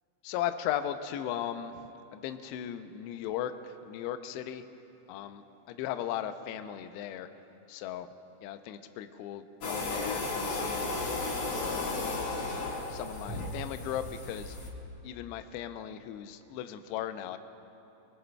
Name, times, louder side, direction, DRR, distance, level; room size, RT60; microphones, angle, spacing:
voice 1, 0.2-4.6 5.1-7.3 7.7-8.1 8.4-11.0 11.5-12.1 12.5-14.6 15.0-17.4, left 10 dB, 90° left, 9 dB, 2.4 m, -37 dB
sound 1, 9.6-14.7, left 3 dB, 55° left, 1.8 m, -34 dB
25.0 x 23.5 x 2.3 m, 3.0 s
omnidirectional pair, 5.5 m